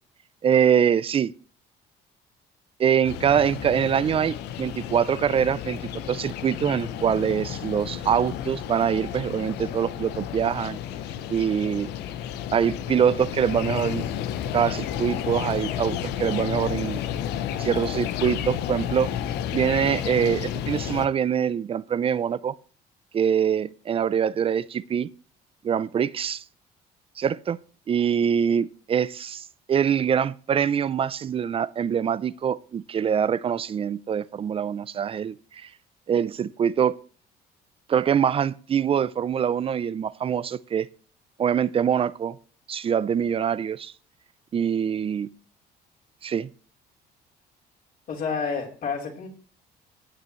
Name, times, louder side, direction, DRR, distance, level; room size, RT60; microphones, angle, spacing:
voice 1, 0.4-1.3 2.8-5.8 6.1-10.8 11.3-11.9 12.5-14.0 14.5-17.0 17.6-19.1 19.5-22.5 23.1-25.1 25.6-26.4 27.2-27.6 27.9-35.7 36.1-37.0 37.9-40.9 41.4-42.4 42.7-43.9 44.5-45.3 46.2-46.5, right 8 dB, 35° right, 0.5 m, -24 dB
sound 1, 3.0-21.1, left 10 dB, 85° left, 0.8 m, -32 dB
voice 2, 48.1-49.3, left 5 dB, 60° left, 3.8 m, -29 dB
15.0 x 9.4 x 3.1 m
cardioid pair, 110°, 17 cm